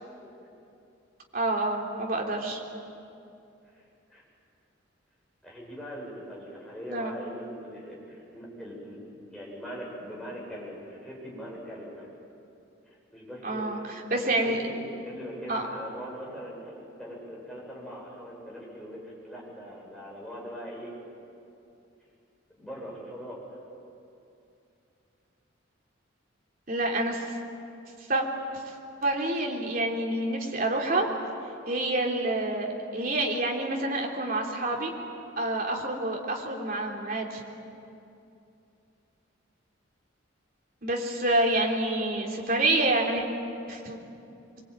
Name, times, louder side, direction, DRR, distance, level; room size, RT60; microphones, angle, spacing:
voice 1, 1.3-2.6 6.9-7.2 13.4-13.8 14.1-14.6 15.5-15.6 26.7-27.2 28.1-28.2 28.5-28.7 29.0-31.1 31.7-34.9 35.4-37.4 40.8-43.2 43.7-44.0, right 2 dB, 50° right, 0 dB, 3.7 m, -27 dB
voice 2, 5.4-9.0 9.3-12.1 13.1-13.8 14.4-20.9 22.6-23.6, equal, 5° left, -5 dB, 7.8 m, -41 dB
25.0 x 23.5 x 9.1 m, 2.6 s
head